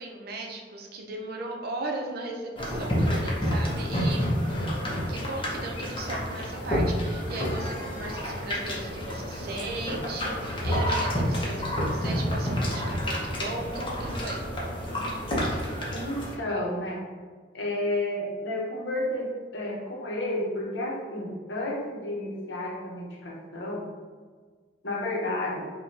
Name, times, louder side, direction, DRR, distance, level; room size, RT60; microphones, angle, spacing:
voice 1, 0.0-4.4 5.1-14.4, right 2 dB, 55° right, 1 dB, 0.6 m, -37 dB
sound 1, 2.6-16.3, equal, 30° left, 0.7 m, -29 dB
voice 2, 15.9-17.0 17.5-23.8 24.8-25.7, left 1 dB, 80° left, -1 dB, 0.8 m, -31 dB
4.9 x 2.2 x 2.7 m, 1.5 s
head